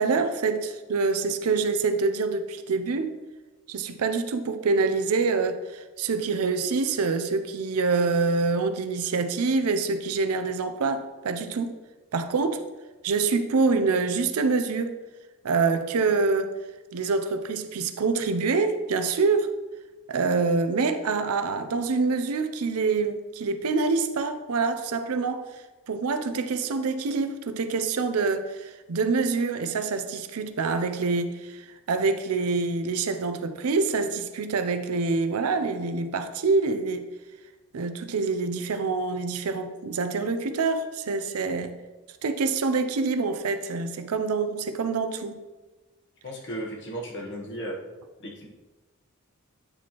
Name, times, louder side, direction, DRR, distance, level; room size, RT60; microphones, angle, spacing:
voice 1, 0.0-3.2 3.7-11.7 12.1-12.6 13.0-14.9 15.4-16.5 16.9-19.5 20.1-25.4 25.9-37.1 37.7-41.7 42.2-45.4, right 4 dB, 75° right, 0.5 m, -26 dB
voice 2, 46.2-47.8 48.2-48.5, right 1 dB, 55° left, 1.2 m, -35 dB
9.0 x 4.2 x 3.0 m
head